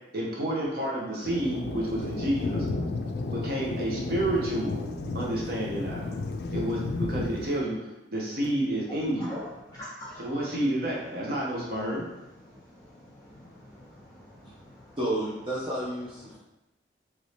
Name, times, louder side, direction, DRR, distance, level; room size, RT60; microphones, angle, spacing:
voice 1, 0.1-2.7 3.3-4.7 5.1-6.1 6.5-7.9 8.1-9.3 10.2-12.1, right 1 dB, 55° right, -4 dB, 0.8 m, -29 dB
Thunder, 1.2-7.6, left 2 dB, 60° left, 0.3 m, -33 dB
voice 2, 8.9-10.2 12.5-14.8, left 1 dB, 20° left, -8 dB, 1.3 m, -44 dB
voice 3, 15.0-16.4, right 1 dB, 30° right, -7 dB, 0.5 m, -31 dB
3.0 x 2.7 x 3.2 m, 0.97 s
head